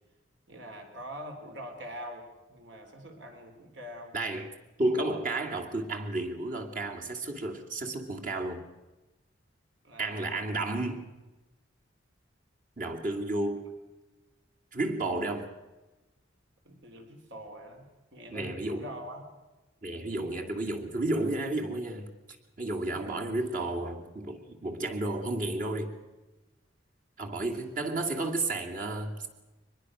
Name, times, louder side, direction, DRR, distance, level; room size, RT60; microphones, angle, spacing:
voice 1, 0.5-4.2 9.8-10.3 16.7-19.2 20.2-20.4 22.9-23.3, equal, 65° right, 4 dB, 3.9 m, -44 dB
voice 2, 4.1-4.5 4.8-8.6 10.0-11.1 12.8-13.7 14.7-15.5 18.3-18.9 19.8-22.1 22.6-25.9 27.2-29.3, right 2 dB, 45° right, 2 dB, 2.6 m, -32 dB
23.5 x 21.0 x 6.4 m, 1.1 s
head